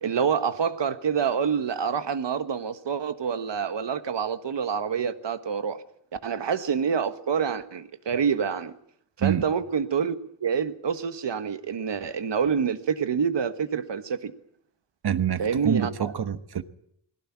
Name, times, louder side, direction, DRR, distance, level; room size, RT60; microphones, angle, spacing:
voice 1, 0.0-5.8 6.2-8.7 9.2-10.1 10.4-14.3 15.4-16.1, right 7 dB, 80° right, 1.6 m, -27 dB
voice 2, 15.0-16.6, right 8 dB, 60° right, 1.3 m, -26 dB
21.0 x 17.0 x 9.9 m
wide cardioid pair, 175°, 43 cm